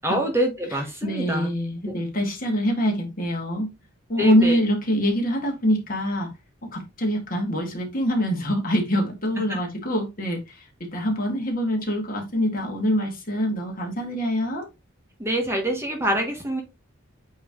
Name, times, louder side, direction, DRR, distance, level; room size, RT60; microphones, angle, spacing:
voice 1, 0.0-1.5 4.2-4.6 15.2-16.6, equal, 10° right, 2 dB, 1.1 m, -25 dB
voice 2, 0.7-3.7 4.1-6.3 6.7-14.7, equal, 40° left, 2 dB, 1.9 m, -25 dB
8.4 x 3.1 x 3.6 m, 0.24 s
head